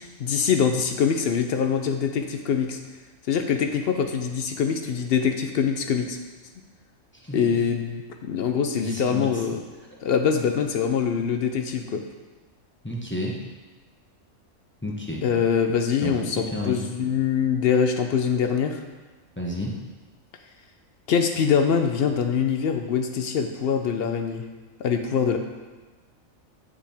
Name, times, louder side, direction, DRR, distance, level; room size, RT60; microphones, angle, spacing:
voice 1, 0.2-2.8 3.3-6.2 7.3-9.6 10.0-12.0 15.2-18.8 21.1-24.4 24.8-25.4, left 7 dB, 65° left, 5 dB, 0.6 m, -24 dB
voice 2, 7.1-7.6 8.8-9.4 12.8-13.4 14.8-15.4 16.0-16.8 19.4-19.8, left 1 dB, 10° left, -3 dB, 0.5 m, -31 dB
7.4 x 5.0 x 3.4 m, 1.3 s
omnidirectional pair, 1.4 m